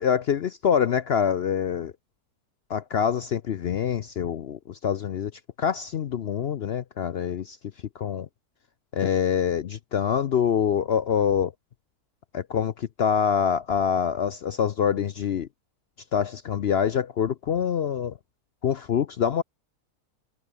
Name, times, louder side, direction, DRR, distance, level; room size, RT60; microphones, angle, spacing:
voice 1, 0.0-1.9 2.7-5.3 5.6-7.6 8.0-8.3 8.9-11.5 12.3-15.5 16.1-18.1 18.6-19.4, left 8 dB, 60° left, 0.7 m, -25 dB
omnidirectional pair, 1.6 m